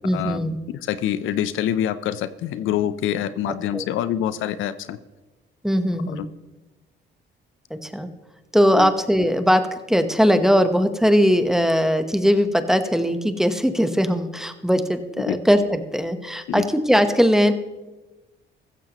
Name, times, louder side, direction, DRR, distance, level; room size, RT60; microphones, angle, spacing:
voice 1, 0.0-0.6 3.7-3.9 5.6-6.3 7.7-8.1 8.5-17.5, equal, ahead, 8 dB, 1.1 m, -20 dB
voice 2, 0.8-5.0 6.2-6.3 8.7-8.9 15.2-15.4 16.5-16.7, left 11 dB, 85° left, 14 dB, 0.7 m, -25 dB
15.0 x 14.5 x 3.0 m, 1.1 s
cardioid pair, 90°, 20 cm